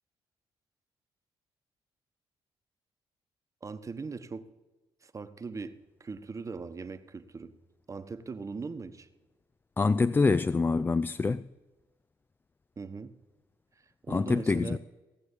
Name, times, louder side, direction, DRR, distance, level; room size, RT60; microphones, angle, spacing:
voice 1, 3.6-4.4 5.0-7.5 7.9-9.1 12.8-13.1 14.0-14.8, right 4 dB, 35° right, 1.0 m, -40 dB
voice 2, 9.8-11.4 14.1-14.8, left 4 dB, 20° left, 0.3 m, -25 dB
16.5 x 6.6 x 8.3 m
supercardioid pair, 65°, 9 cm